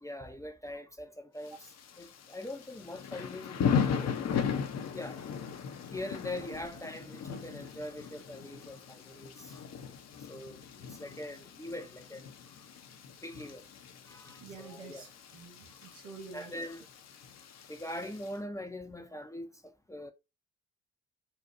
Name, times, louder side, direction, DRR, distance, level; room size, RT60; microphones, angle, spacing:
voice 1, 0.0-4.1 4.9-5.2 5.9-9.6 10.1-12.3 13.2-13.7 14.0-15.0 16.3-16.9 17.7-20.1, left 1 dB, 10° left, 0.6 m, -42 dB
Thunder / Rain, 1.4-18.3, left 7 dB, 50° left, 0.7 m, -38 dB
voice 2, 14.4-16.5, right 4 dB, 80° right, 1.3 m, -48 dB
4.2 x 2.3 x 2.6 m
hypercardioid pair, 50°, 35 cm